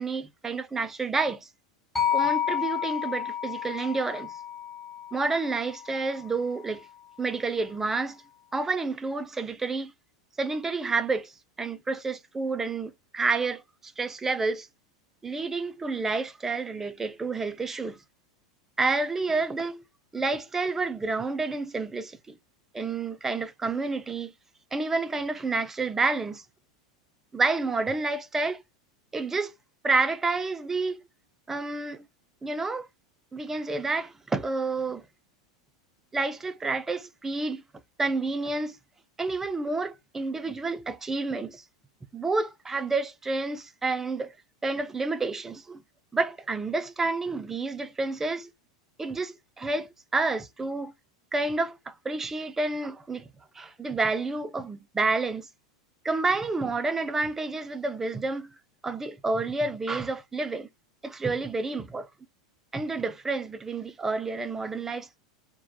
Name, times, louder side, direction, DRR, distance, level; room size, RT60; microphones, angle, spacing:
voice 1, 0.0-1.5 2.1-4.3 5.1-6.9 7.2-8.2 8.5-9.9 10.4-11.3 11.6-14.7 15.2-18.0 18.8-19.8 20.1-22.4 22.7-24.3 24.7-26.4 27.3-28.6 29.1-29.5 29.8-31.0 31.5-32.1 32.4-32.9 33.3-35.0 36.1-37.6 38.0-38.8 39.2-41.6 42.1-44.4 44.6-45.8 46.1-48.5 49.0-50.9 51.3-53.3 53.5-55.5 56.0-58.5 58.8-60.7 61.0-62.1 62.7-65.2, right 3 dB, 10° right, 0.4 m, -29 dB
sound 1, 2.0-6.2, left 9 dB, 10° left, 0.8 m, -30 dB
2.9 x 2.0 x 2.5 m
figure-of-eight pair, 85°, 3 cm